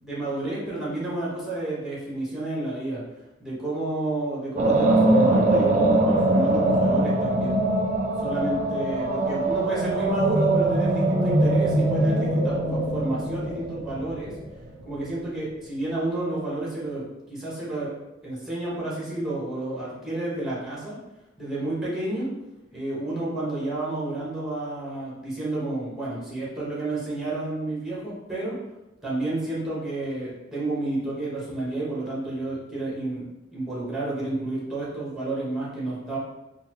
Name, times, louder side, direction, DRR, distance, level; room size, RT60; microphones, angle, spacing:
voice 1, 0.0-3.0 3.4-7.6 8.2-14.3 14.8-17.9 18.2-21.0 21.4-22.3 22.7-28.5 29.0-33.3 33.5-36.2, right 2 dB, ahead, -6 dB, 1.0 m, -30 dB
sound 1, 4.6-14.7, right 1 dB, 40° right, 0.4 m, -22 dB
4.0 x 2.4 x 2.9 m, 0.96 s
head